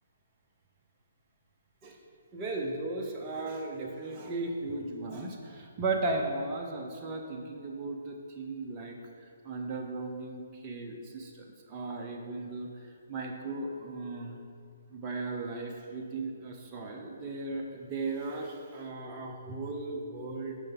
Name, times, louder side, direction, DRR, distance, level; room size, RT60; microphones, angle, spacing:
voice 1, 2.3-9.0 9.4-12.7 13.1-14.4 14.9-20.6, right 3 dB, 25° right, 0 dB, 0.8 m, -36 dB
8.9 x 5.3 x 4.0 m, 2.2 s
figure-of-eight pair, 130°, 0 cm